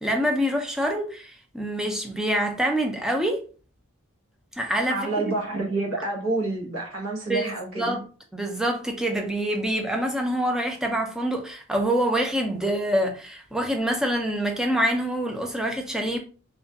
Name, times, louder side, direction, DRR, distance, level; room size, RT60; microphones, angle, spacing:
voice 1, 0.0-3.4 4.6-5.0 5.2-5.3 7.3-8.0 8.3-16.2, right 1 dB, 5° right, 0.3 m, -26 dB
voice 2, 4.9-8.0, right 2 dB, 85° right, 0.8 m, -28 dB
2.3 x 2.2 x 2.6 m
head